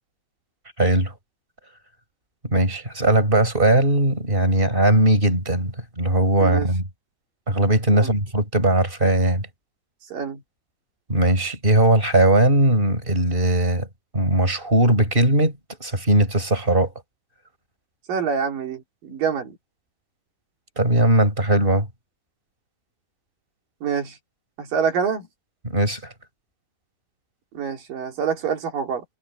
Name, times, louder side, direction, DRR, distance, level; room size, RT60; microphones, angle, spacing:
voice 1, 0.8-1.1 2.4-6.8 7.5-9.5 11.1-13.9 14.1-15.5 15.8-16.9 20.8-21.9 25.6-26.1, right 1 dB, 15° right, 6.5 m, -19 dB
voice 2, 10.1-10.4 18.1-19.6 23.8-24.2 24.6-25.3 27.5-29.0, right 7 dB, 75° right, 4.4 m, -26 dB
omnidirectional pair, 3.9 m